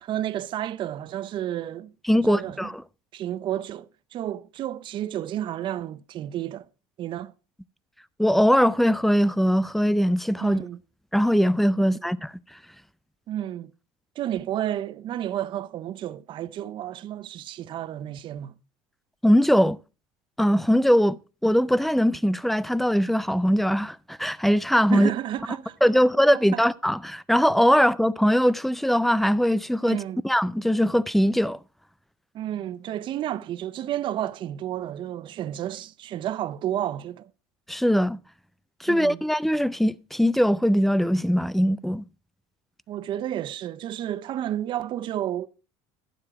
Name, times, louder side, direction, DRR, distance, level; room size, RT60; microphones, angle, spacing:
voice 1, 0.0-1.9 2.2-2.7 3.1-6.7 7.0-7.3 10.4-10.8 13.3-13.7 14.2-18.5 24.9-25.8 26.3-26.6 29.9-30.2 32.3-37.3 38.9-39.2 42.9-45.5, right 11 dB, 45° right, 0.6 m, -31 dB
voice 2, 2.1-2.8 8.2-10.6 11.1-12.3 19.2-19.8 20.4-25.1 25.8-31.6 37.7-38.2 38.8-42.0, equal, ahead, 0.4 m, -21 dB
11.5 x 7.4 x 4.9 m
supercardioid pair, 110°, 11 cm